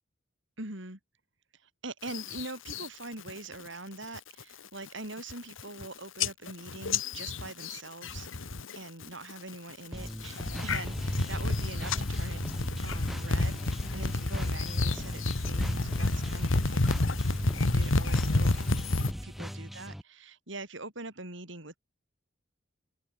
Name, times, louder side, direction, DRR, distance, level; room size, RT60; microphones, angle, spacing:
voice 1, 0.6-1.0 1.6-12.4 12.8-21.8, right 2 dB, 70° right, 5.3 m, -43 dB
sound 1, 2.1-2.9 3.3-3.7 4.0-4.4 4.9-5.0 5.2-5.9 6.2-8.8 9.0-9.5 10.1-19.1, left 2 dB, 80° left, 1.5 m, -30 dB
sound 2, 9.9-20.0, equal, ahead, 3.1 m, -39 dB
open air
head